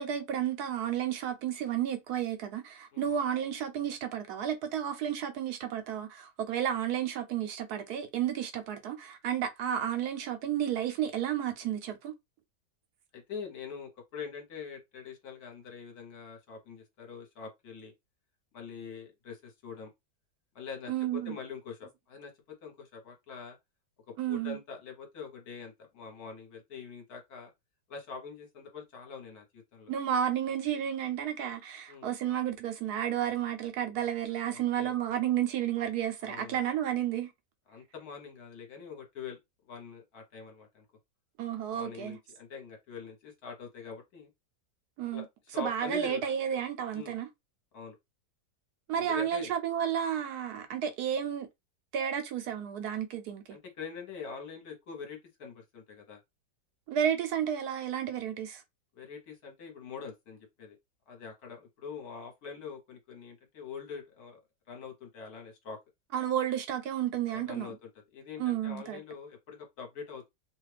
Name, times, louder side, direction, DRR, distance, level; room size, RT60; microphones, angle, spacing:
voice 1, 0.0-12.1 20.9-21.4 24.2-24.6 29.9-37.3 41.4-42.2 45.0-45.2 45.6-47.3 48.9-51.5 51.9-53.6 56.9-58.6 66.1-67.8 68.4-69.0, right 9 dB, 75° right, 1.1 m, -32 dB
voice 2, 13.1-17.9 18.5-19.9 20.5-22.3 22.6-23.6 24.3-27.5 27.9-29.9 31.9-32.1 34.5-34.9 36.2-36.6 37.7-39.4 39.7-40.8 41.7-44.3 45.1-45.3 45.5-46.2 46.9-47.1 47.7-47.9 48.9-49.5 53.5-56.2 58.9-60.8 61.1-64.4 64.7-65.8 67.3-70.3, left 6 dB, 65° left, 1.5 m, -44 dB
2.9 x 2.4 x 3.3 m
omnidirectional pair, 1.8 m